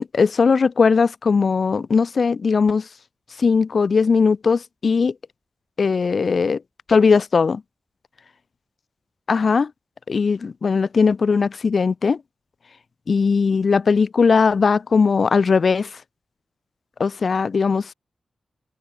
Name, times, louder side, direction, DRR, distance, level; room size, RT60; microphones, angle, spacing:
voice 1, 0.0-2.9 3.4-5.1 5.8-6.6 6.9-7.6 9.3-9.7 10.1-12.2 13.1-16.0 17.0-17.9, left 5 dB, 50° left, 2.8 m, -19 dB
wide cardioid pair, 170°, 0 cm